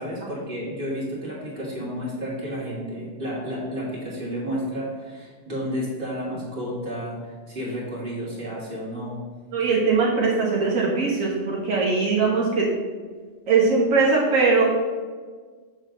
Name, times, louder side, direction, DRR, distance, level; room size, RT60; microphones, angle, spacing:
voice 1, 0.0-9.2, equal, 40° right, -6 dB, 2.3 m, -31 dB
voice 2, 9.5-12.6 13.5-14.6, right 4 dB, 80° right, -3 dB, 1.4 m, -21 dB
7.2 x 3.3 x 6.2 m, 1.5 s
omnidirectional pair, 1.4 m